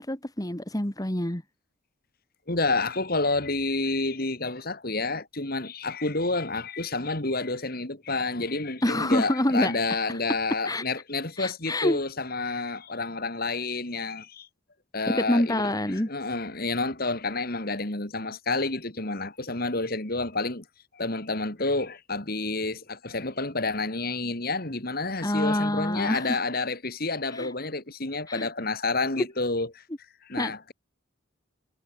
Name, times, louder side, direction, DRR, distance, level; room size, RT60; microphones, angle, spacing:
voice 1, 0.0-1.4 8.8-9.7 10.7-10.8 11.4-12.0 15.1-16.1 25.2-26.4 27.3-27.5 28.3-28.5 29.2-29.3 30.4-30.5, left 1 dB, 20° left, 1.8 m, -26 dB
voice 2, 2.5-14.5 14.9-20.6 20.9-29.8 30.2-30.7, left 3 dB, 50° left, 2.9 m, -29 dB
head